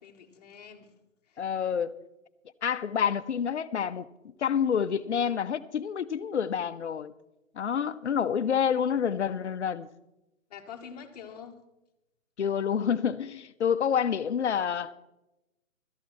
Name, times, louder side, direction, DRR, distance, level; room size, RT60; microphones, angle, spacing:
voice 1, 0.0-1.0 1.2-1.8 10.5-11.6, left 7 dB, 30° left, 1.2 m, -46 dB
voice 2, 1.4-1.9 2.6-4.1 4.4-7.1 7.5-9.9 12.4-14.9, left 7 dB, 55° left, 0.7 m, -28 dB
17.0 x 13.0 x 3.1 m
hypercardioid pair, 155°, 40 cm